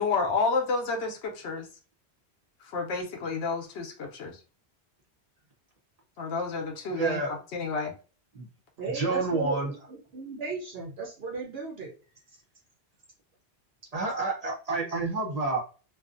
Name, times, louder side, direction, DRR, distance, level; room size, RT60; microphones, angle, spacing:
voice 1, 0.0-1.7 2.6-4.4 6.2-7.2 7.5-7.9, left 4 dB, 90° left, 2 dB, 0.9 m, -30 dB
voice 2, 6.9-7.4 8.3-8.5 8.9-9.7 13.9-15.6, right 3 dB, 40° right, -1 dB, 0.7 m, -29 dB
voice 3, 8.8-11.9, right 4 dB, 70° right, -1 dB, 0.9 m, -35 dB
2.5 x 2.3 x 2.4 m, 0.36 s
omnidirectional pair, 1.1 m